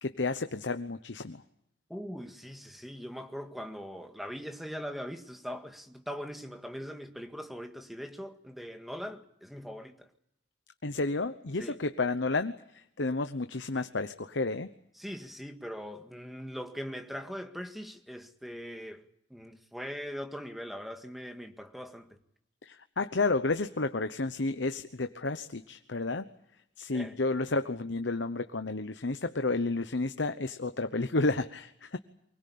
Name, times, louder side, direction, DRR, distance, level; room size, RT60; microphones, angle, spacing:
voice 1, 0.0-1.4 10.8-14.7 22.6-26.3 26.8-32.0, left 3 dB, 75° left, 1.0 m, -31 dB
voice 2, 1.9-10.1 11.6-11.8 15.0-19.0 19.3-22.2 26.9-27.2, equal, ahead, 1.9 m, -41 dB
24.5 x 21.0 x 8.7 m
head